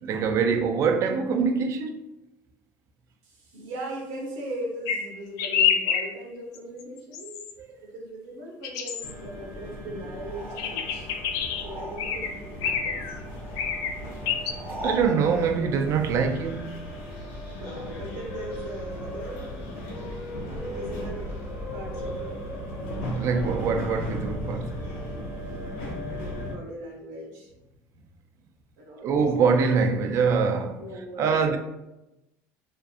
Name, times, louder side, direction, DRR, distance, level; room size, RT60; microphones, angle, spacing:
voice 1, 0.0-2.1 14.8-16.9 23.2-24.9 29.0-30.8 31.2-31.6, right 5 dB, 50° right, 0.3 m, -24 dB
voice 2, 3.2-7.4 7.8-11.1 11.6-13.2 17.5-19.7 20.6-21.3 21.7-22.4 26.1-27.5 28.8-29.3 30.8-31.6, right 1 dB, 90° right, 0.8 m, -39 dB
sound 1, 4.9-5.0 5.4-6.0 6.5-6.8 7.1-7.5 8.6-9.1 10.6-11.6 12.0-12.3 12.6-13.2 13.6-13.9 14.3-14.5, left 7 dB, 65° left, 0.3 m, -27 dB
sound 2, 9.0-26.5, equal, 85° left, 0.7 m, -36 dB
sound 3, 10.2-12.4 12.7-15.2, equal, 25° right, 0.8 m, -40 dB
2.5 x 2.4 x 2.4 m
supercardioid pair, 115°, 7 cm